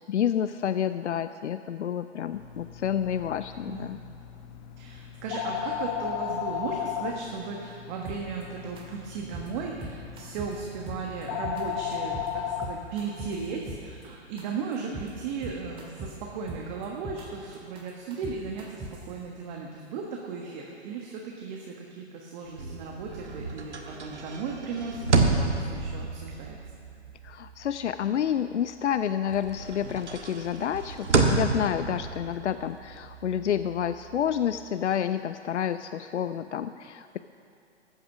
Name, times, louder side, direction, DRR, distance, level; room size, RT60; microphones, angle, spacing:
voice 1, 0.0-4.0 27.2-37.2, left 9 dB, 85° left, 12 dB, 0.5 m, -29 dB
sound 1, 2.3-12.7, left 9 dB, 30° left, 0.9 m, -36 dB
voice 2, 3.7-4.1 4.8-26.6, right 5 dB, 40° right, 0 dB, 1.4 m, -36 dB
sound 2, 8.0-8.4 8.8-8.9 9.1-9.5 9.8-10.5 10.9-11.6 11.9-12.3 12.6-14.0 14.4-14.5 14.7-15.1 15.4-16.1 16.5-17.2 17.5-19.1, right 2 dB, 15° right, 2.0 m, -40 dB
sound 3, 22.5-28.9 29.3-34.7, right 3 dB, 85° right, 1.6 m, -30 dB
14.0 x 9.0 x 6.1 m, 2.5 s
hypercardioid pair, 125°, 34 cm